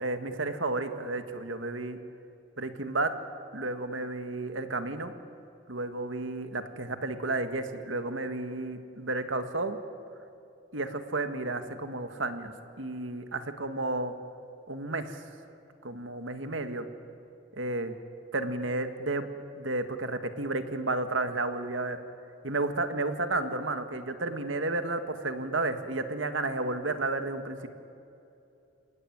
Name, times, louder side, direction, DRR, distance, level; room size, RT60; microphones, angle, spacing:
voice 1, 0.0-2.0 2.6-3.1 3.5-5.1 5.7-9.8 10.7-14.1 14.7-15.2 15.8-16.9 17.5-17.9 18.3-19.3 19.5-22.0 22.4-27.7, right 2 dB, 85° right, 8 dB, 1.8 m, -32 dB
28.5 x 17.5 x 9.4 m, 2.7 s
head